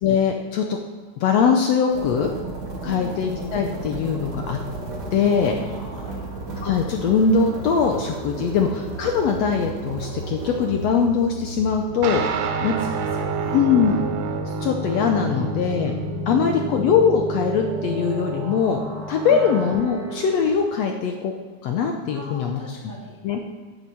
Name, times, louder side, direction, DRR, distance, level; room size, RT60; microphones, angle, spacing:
voice 1, 0.0-0.8 1.2-2.3 2.8-4.6 5.1-5.5 6.6-12.3 12.6-12.7 13.5-14.0 14.6-15.9 16.3-18.8 19.1-21.3 21.6-22.9 23.2-23.4, left 6 dB, 70° left, 3 dB, 1.7 m, -21 dB
sound 1, 1.9-20.5, right 3 dB, 35° right, 2.3 m, -34 dB
voice 2, 2.8-3.3 5.6-6.2 8.5-8.7 12.8-13.7 15.2-15.3 16.2-16.8 19.3-19.5 22.1-23.2, right 1 dB, 10° right, -2 dB, 1.1 m, -39 dB
sound 2, 12.0-19.8, right 3 dB, 85° right, 2.5 m, -29 dB
9.9 x 7.0 x 7.4 m, 1.5 s
omnidirectional pair, 3.6 m